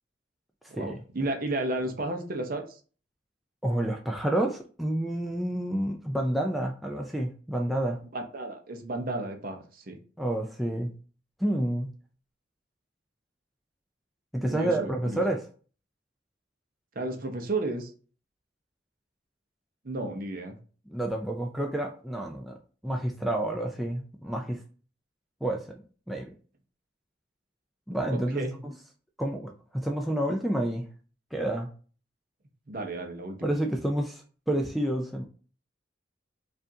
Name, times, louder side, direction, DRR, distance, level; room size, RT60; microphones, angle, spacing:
voice 1, 0.7-2.8 8.1-10.0 14.5-15.2 17.0-17.9 19.8-20.6 28.1-28.6 32.7-33.4, right 2 dB, 50° right, 4 dB, 0.7 m, -33 dB
voice 2, 3.6-8.0 10.2-10.9 11.4-11.9 14.3-15.4 20.9-22.5 22.8-24.6 25.4-26.3 27.9-28.7 29.2-30.8 31.3-31.7 33.4-35.2, right 1 dB, ahead, 0 dB, 0.3 m, -29 dB
4.7 x 2.5 x 2.7 m, 0.39 s
head